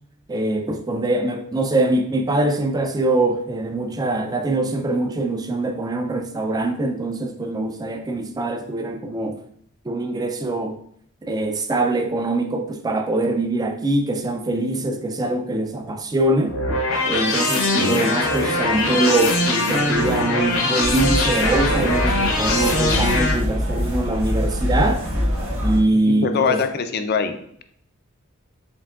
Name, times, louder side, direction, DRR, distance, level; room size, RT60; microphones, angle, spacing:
voice 1, 0.3-9.4 9.9-10.8 11.2-16.6 17.1-25.1 25.6-26.6, right 2 dB, 20° right, 0.3 m, -23 dB
sound 1, 16.5-23.3, left 2 dB, 70° left, 0.8 m, -22 dB
sound 2, 20.8-25.8, equal, 70° right, 1.2 m, -24 dB
voice 2, 25.9-27.4, left 5 dB, 50° left, 0.4 m, -23 dB
4.5 x 3.5 x 2.4 m
head